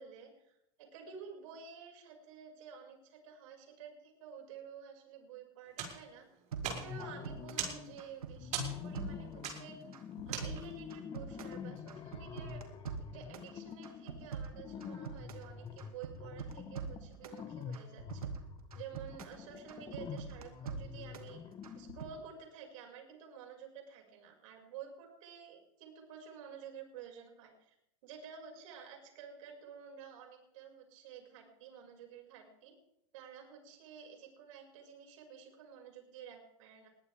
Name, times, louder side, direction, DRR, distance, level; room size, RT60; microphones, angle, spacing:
voice 1, 0.0-6.2 6.7-9.8 10.3-12.6 13.0-18.3 18.7-27.7 28.0-32.7 33.1-36.9, right 7 dB, 60° right, 2 dB, 6.0 m, -51 dB
sound 1, 5.7-10.9, right 7 dB, 40° right, 6.1 m, -42 dB
sound 2, 6.5-7.7 8.0-9.6 9.9-11.6 11.9-13.5 13.8-15.5 15.8-17.4 17.7-19.4 19.7-21.3 21.6-22.1, right 6 dB, 90° right, 2.3 m, -43 dB
sound 3, 6.6-8.0 8.4-22.3, left 7 dB, 25° left, 1.3 m, -47 dB
21.5 x 16.5 x 3.5 m, 0.81 s
hypercardioid pair, 110°, 18 cm